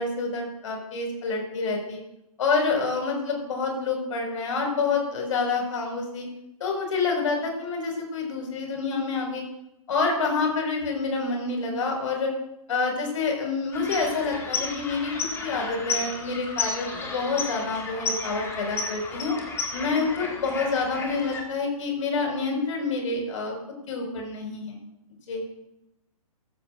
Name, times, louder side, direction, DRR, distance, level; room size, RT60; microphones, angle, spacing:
voice 1, 0.0-2.0 2.4-6.3 6.6-9.4 9.9-12.3 12.7-19.3 19.7-23.6 23.9-24.8 25.3-25.4, left 4 dB, 60° left, 1 dB, 5.3 m, -27 dB
sound 1, 13.7-21.4, left 4 dB, 15° left, 2.1 m, -33 dB
15.0 x 14.5 x 2.6 m, 0.84 s
hypercardioid pair, 130°, 19 cm